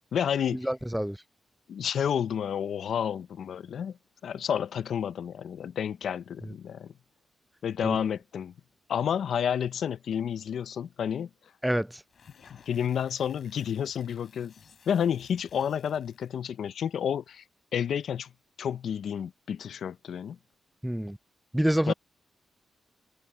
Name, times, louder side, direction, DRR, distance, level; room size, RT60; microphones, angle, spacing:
voice 1, 0.1-0.6 1.7-4.0 4.2-6.9 7.6-8.5 8.9-11.3 12.5-14.5 14.9-17.4 17.7-18.3 18.6-20.4 21.9-22.0, left 8 dB, 70° left, 0.5 m, -30 dB
voice 2, 0.6-1.2 7.8-8.0 11.6-11.9 20.8-21.2 21.5-21.9, equal, 5° right, 0.4 m, -26 dB
sound 1, 12.0-16.4, left 6 dB, 55° left, 4.2 m, -58 dB
wide cardioid pair, 125°, 0 cm